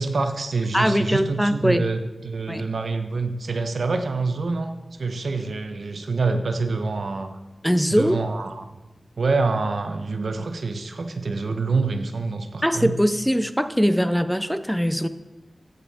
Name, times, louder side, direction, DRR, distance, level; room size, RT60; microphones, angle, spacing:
voice 1, 0.0-4.7 5.0-7.4 7.9-8.7 9.2-12.9, right 3 dB, 80° right, 7 dB, 0.9 m, -26 dB
voice 2, 0.7-1.9 2.5-2.6 7.6-8.2 12.6-15.1, equal, ahead, 11 dB, 0.4 m, -21 dB
15.0 x 5.4 x 4.1 m, 1.1 s
wide cardioid pair, 105°, 0 cm